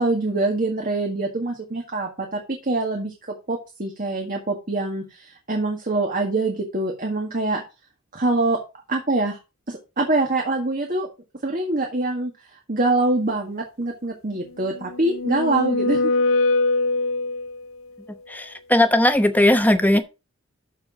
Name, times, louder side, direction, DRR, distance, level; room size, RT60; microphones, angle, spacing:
voice 1, 0.0-7.6 8.1-8.6 8.9-9.4 9.7-11.1 11.4-12.3 12.7-16.1, right 2 dB, 40° right, 1.8 m, -24 dB
sound 1, 14.7-17.7, left 3 dB, 70° left, 0.7 m, -22 dB
voice 2, 18.3-20.0, left 1 dB, 10° left, 0.9 m, -18 dB
13.0 x 4.7 x 4.9 m
head